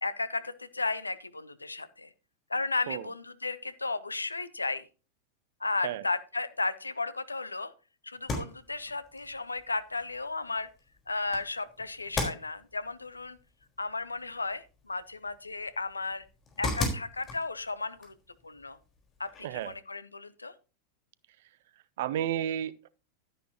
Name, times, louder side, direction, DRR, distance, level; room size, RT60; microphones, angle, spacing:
voice 1, 0.0-2.1 2.5-4.8 5.6-7.7 8.0-10.7 11.1-13.4 13.8-16.2 16.6-18.1 18.4-18.8 19.2-20.5, left 3 dB, 80° left, 0.8 m, -34 dB
sound 1, 8.1-19.8, left 2 dB, 25° left, 4.1 m, -40 dB
voice 2, 19.4-19.8 22.0-22.9, right 11 dB, 55° right, 0.7 m, -32 dB
12.0 x 10.0 x 2.8 m
figure-of-eight pair, 90°, 0 cm